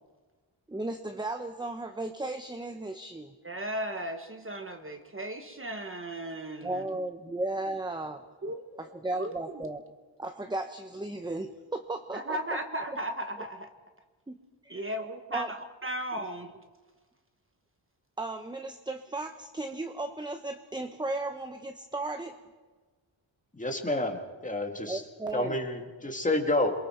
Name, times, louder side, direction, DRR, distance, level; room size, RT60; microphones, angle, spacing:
voice 1, 0.7-3.3 6.6-8.2 8.8-9.8 10.2-12.6 14.3-14.4 14.6-14.9 15.3-15.5 18.2-22.3 24.9-25.6, right 2 dB, 10° right, 7 dB, 0.8 m, -35 dB
voice 2, 3.4-6.9 8.4-8.9 9.2-9.6 12.1-13.7 14.7-16.5, right 1 dB, 25° right, 6 dB, 1.1 m, -36 dB
voice 3, 23.5-25.0 25.3-26.7, left 2 dB, 15° left, 3 dB, 2.0 m, -29 dB
27.5 x 23.0 x 4.5 m, 1.3 s
wide cardioid pair, 145°, 48 cm